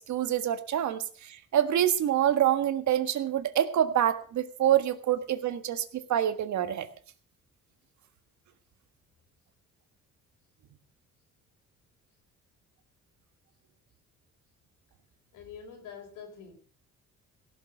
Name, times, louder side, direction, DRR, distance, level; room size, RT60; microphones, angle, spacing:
voice 1, 0.0-6.9, right 11 dB, 70° right, 1.6 m, -26 dB
voice 2, 15.3-16.5, left 6 dB, 85° left, 4.7 m, -45 dB
16.5 x 7.6 x 6.4 m
cardioid pair, 90°, 30 cm